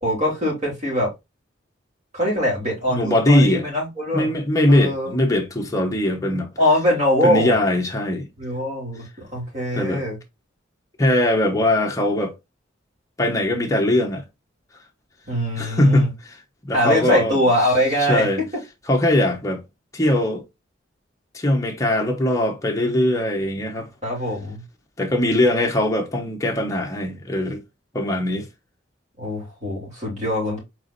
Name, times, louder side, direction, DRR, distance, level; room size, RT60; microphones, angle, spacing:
voice 1, 0.0-1.1 2.1-4.3 4.7-5.2 6.6-7.6 8.4-10.2 15.3-16.1 16.7-18.2 24.0-24.6 29.2-30.6, left 1 dB, 40° right, 3.1 m, -22 dB
voice 2, 2.9-3.7 4.1-6.5 7.2-8.3 9.7-10.0 11.0-12.3 13.2-14.2 15.5-16.1 16.6-17.4 18.1-18.4 18.9-19.6 19.9-20.4 21.3-23.9 25.0-27.6 27.9-28.5, left 1 dB, 15° left, 1.0 m, -20 dB
4.7 x 4.3 x 2.6 m
head